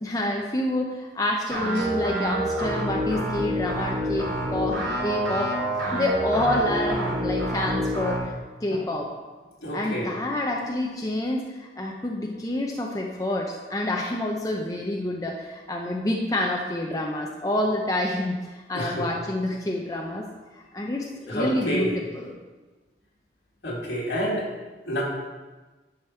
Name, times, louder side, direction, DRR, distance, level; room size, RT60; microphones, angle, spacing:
voice 1, 0.0-5.5 5.9-8.3 8.6-9.1 9.7-20.2 20.5-21.9 22.1-22.3, left 1 dB, 20° left, 0 dB, 0.6 m, -28 dB
sound 1, 1.5-8.2, right 1 dB, 90° right, 2.6 m, -27 dB
voice 2, 9.6-10.1 18.7-19.1 21.3-22.0 23.6-24.5 24.9-25.0, equal, 75° left, -4 dB, 2.3 m, -28 dB
10.5 x 5.3 x 4.4 m, 1.2 s
head